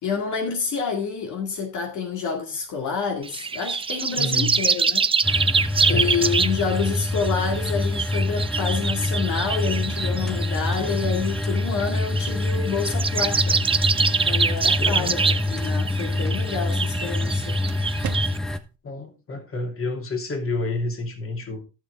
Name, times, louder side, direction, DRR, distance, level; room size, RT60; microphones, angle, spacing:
voice 1, 0.0-5.0 5.9-13.6 14.2-17.6, left 5 dB, 75° left, 2.2 m, -28 dB
sound 1, 3.2-18.4, right 5 dB, 20° right, 0.4 m, -25 dB
voice 2, 4.2-4.6 5.9-6.2 14.8-15.2 18.8-21.6, left 2 dB, 45° left, 2.8 m, -29 dB
pump steady, 5.2-18.6, left 2 dB, ahead, 1.0 m, -26 dB
sound 2, 13.5-18.8, right 10 dB, 70° right, 1.2 m, -43 dB
13.5 x 6.3 x 3.5 m
cardioid pair, 90°, 30 cm